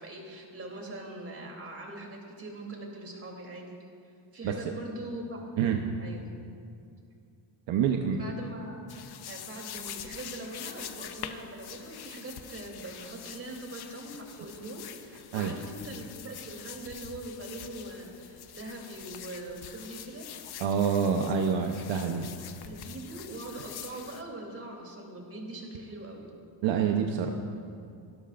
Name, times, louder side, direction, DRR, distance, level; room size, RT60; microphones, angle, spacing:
voice 1, 0.0-3.8 4.0-5.4 6.0-6.3 8.1-8.7 9.2-20.3 22.6-26.3, right 1 dB, 30° right, 0 dB, 3.4 m, -42 dB
voice 2, 5.6-6.0 7.7-8.2 15.3-15.5 20.6-22.3 26.6-27.3, right 7 dB, 75° right, 3 dB, 1.0 m, -27 dB
sound 1, 8.9-24.2, left 9 dB, 55° left, 0.9 m, -45 dB
30.0 x 12.5 x 2.6 m, 2.5 s
cardioid pair, 110°, 45 cm